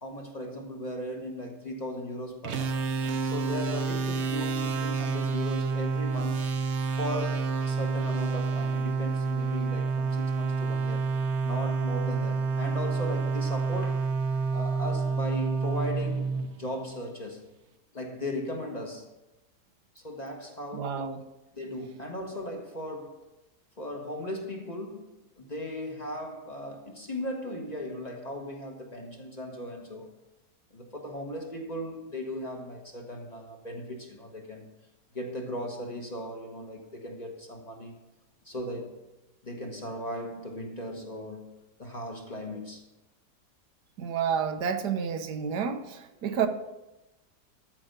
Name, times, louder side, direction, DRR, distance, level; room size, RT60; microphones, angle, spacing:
voice 1, 0.0-2.8 3.2-6.5 7.0-11.1 11.4-14.1 14.5-17.5 17.9-19.1 19.9-21.1 21.5-23.3 23.8-25.1 25.4-30.1 30.7-34.7 35.1-38.0 38.4-39.0 39.4-41.5 41.8-42.9 46.3-46.4, equal, 25° left, 1.3 m, -37 dB
sound 1, 2.4-17.0, right 4 dB, 50° right, 1.0 m, -29 dB
voice 2, 20.7-21.2 44.0-46.5, right 7 dB, 90° right, 1.5 m, -30 dB
13.5 x 5.1 x 6.7 m
omnidirectional pair, 1.7 m